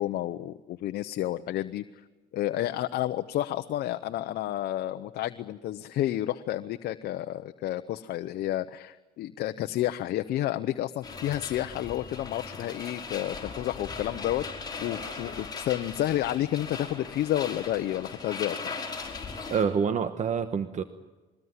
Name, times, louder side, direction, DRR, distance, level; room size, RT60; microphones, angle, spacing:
voice 1, 0.0-1.8 2.3-18.6, left 13 dB, 70° left, 8 dB, 0.9 m, -30 dB
sound 1, 11.0-19.6, left 4 dB, 25° left, 5.2 m, -39 dB
voice 2, 19.5-20.8, right 6 dB, 45° right, 10 dB, 1.2 m, -27 dB
22.5 x 20.0 x 9.6 m, 1.2 s
cardioid pair, 110°, 17 cm